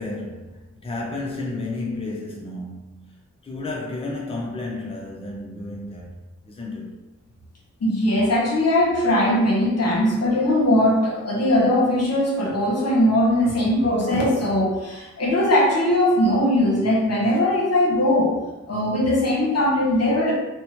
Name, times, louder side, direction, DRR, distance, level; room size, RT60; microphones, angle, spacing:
voice 1, 0.0-3.1 3.4-6.1 6.4-6.9 17.3-17.4, left 2 dB, 20° left, 0.6 m, -32 dB
voice 2, 7.8-18.3 18.7-20.3, left 1 dB, 55° left, 1.0 m, -20 dB
2.7 x 2.1 x 2.9 m
cardioid pair, 50°, 31 cm